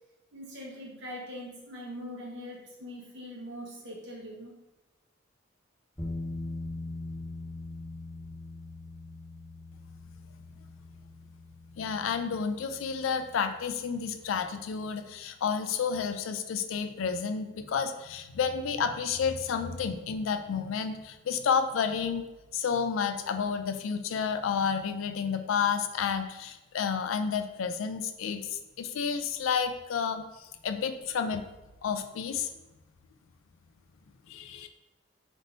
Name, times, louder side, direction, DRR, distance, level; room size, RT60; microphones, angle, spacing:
voice 1, 0.3-4.5, equal, 55° right, -4 dB, 1.2 m, -42 dB
sound 1, 6.0-14.9, left 2 dB, 15° left, 0.6 m, -42 dB
voice 2, 11.8-22.2 22.5-31.4 31.8-32.5 34.3-34.7, left 6 dB, 70° left, 8 dB, 0.3 m, -30 dB
3.9 x 3.6 x 2.6 m, 1.0 s
head